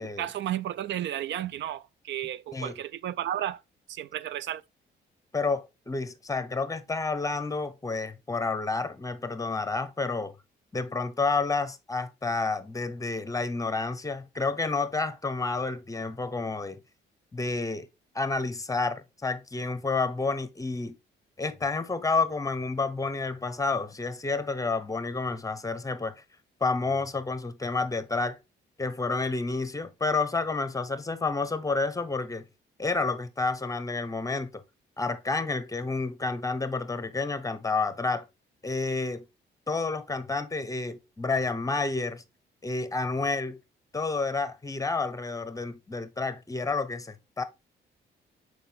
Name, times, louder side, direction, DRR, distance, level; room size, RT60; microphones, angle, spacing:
voice 1, 0.0-3.6 3.9-4.6, right 11 dB, 65° right, 0.4 m, -33 dB
voice 2, 5.3-10.3 10.7-16.8 17.3-17.9 18.1-20.9 21.4-26.2 26.6-28.4 28.8-32.5 32.8-34.6 35.0-38.2 38.6-39.3 39.7-42.2 42.6-43.6 43.9-47.4, left 3 dB, 15° left, 0.9 m, -30 dB
6.7 x 4.9 x 3.8 m
cardioid pair, 90°, 20 cm